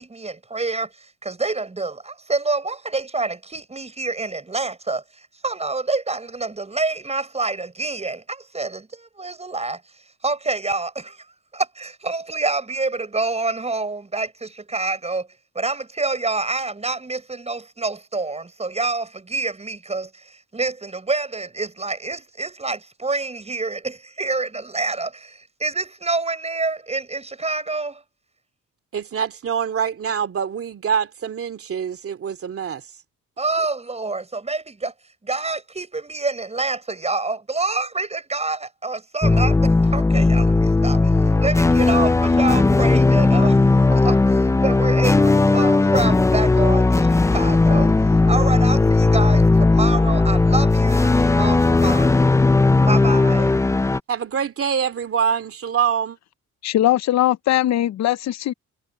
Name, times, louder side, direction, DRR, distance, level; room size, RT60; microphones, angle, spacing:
voice 1, 0.2-0.9 1.4-1.9 2.3-5.0 5.4-8.2 8.5-8.7 9.2-9.8 10.2-10.9 12.0-14.3 14.7-15.2 15.6-17.2 17.5-19.0 19.3-20.0 20.5-22.8 23.0-23.8 24.2-24.5 24.7-25.1 25.6-27.9 33.4-34.2 34.5-34.6 35.3-38.6 38.8-39.5 39.9-40.4 40.8-41.0 41.4-42.1 42.4-43.5 44.0-44.1 44.6-46.8 47.3-47.9 48.3-49.4 49.8-51.1 51.4-51.6 51.8-52.1 52.9-53.5, right 3 dB, 20° right, 6.2 m, -26 dB
voice 2, 28.9-32.8 54.1-56.2, right 7 dB, 50° right, 2.5 m, -24 dB
sound 1, 39.2-54.0, left 3 dB, 10° left, 0.4 m, -16 dB
voice 3, 56.6-58.5, left 13 dB, 65° left, 0.7 m, -20 dB
cardioid pair, 90°, 30 cm